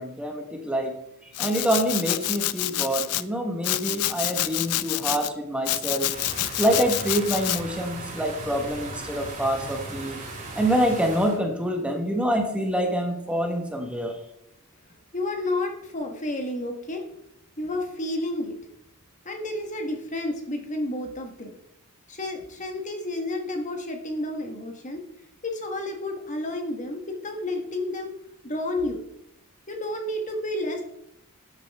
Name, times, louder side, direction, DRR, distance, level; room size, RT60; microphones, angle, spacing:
voice 1, 0.0-6.1 6.6-10.2 10.5-14.2, equal, 5° right, 2 dB, 1.3 m, -26 dB
Domestic sounds home sounds, 1.3-3.2 3.6-5.3 5.7-7.6, left 15 dB, 90° left, 0.5 m, -28 dB
sound 1, 6.1-11.4, right 2 dB, 35° right, 4.6 m, -37 dB
voice 2, 15.1-17.0 17.6-18.6 19.2-21.5 22.1-25.0 25.4-28.1 28.4-29.0 29.7-30.8, left 1 dB, 35° left, 3 dB, 1.4 m, -31 dB
12.5 x 9.0 x 3.5 m, 0.79 s
head